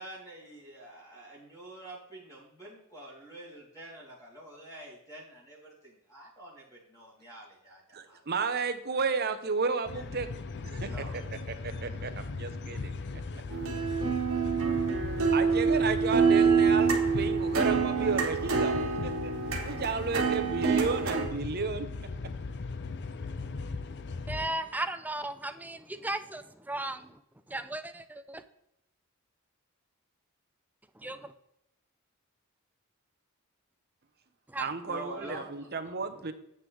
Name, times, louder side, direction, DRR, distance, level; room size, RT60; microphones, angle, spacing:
voice 1, 0.0-7.8 8.1-8.2 10.8-11.4 12.0-12.1 14.1-14.4 34.9-35.7, right 1 dB, 15° left, -6 dB, 3.4 m, -47 dB
voice 2, 7.9-10.3 10.6-11.0 11.6-13.0 15.3-19.3 19.6-21.9 34.6-36.3, right 4 dB, 50° right, 8 dB, 0.9 m, -32 dB
sound 1, 9.9-24.5, left 3 dB, 55° left, 0.5 m, -38 dB
sound 2, 13.5-21.3, right 5 dB, 70° right, 1.9 m, -26 dB
voice 3, 24.3-27.2 27.5-28.4 31.0-31.3 34.5-34.6, right 1 dB, 10° right, 10 dB, 0.5 m, -36 dB
9.7 x 8.0 x 3.4 m, 0.79 s
head